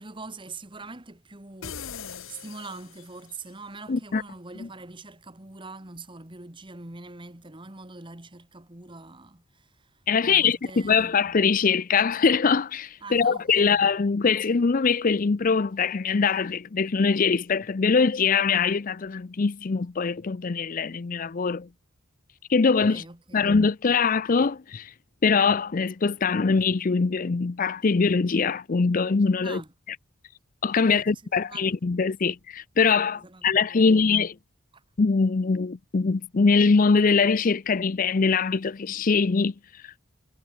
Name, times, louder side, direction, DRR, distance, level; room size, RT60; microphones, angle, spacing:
voice 1, 0.0-11.2 13.0-13.8 22.6-23.5 29.4-29.7 30.8-31.7 33.1-34.1 34.7-34.8, right 3 dB, 25° right, 1.7 m, -44 dB
sound 1, 1.6-3.4, left 7 dB, 75° left, 1.5 m, -40 dB
voice 2, 3.9-4.2 10.1-21.7 22.5-23.0 23.3-24.9 25.2-29.6 30.6-34.3 35.0-39.9, left 5 dB, 40° left, 0.5 m, -23 dB
head